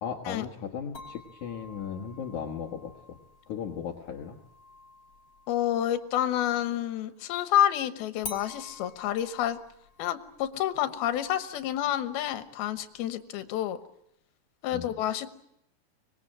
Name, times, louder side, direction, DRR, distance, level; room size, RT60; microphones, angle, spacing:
voice 1, 0.0-3.2 3.5-4.4 14.7-14.9, left 7 dB, 60° left, 2 dB, 2.5 m, -36 dB
sound 1, 0.9-6.5 8.2-13.2, left 4 dB, 35° left, 3.2 m, -49 dB
voice 2, 5.5-9.6 10.0-13.8 14.6-15.3, left 11 dB, 80° left, 10 dB, 3.0 m, -29 dB
25.0 x 20.5 x 8.9 m, 0.78 s
omnidirectional pair, 4.4 m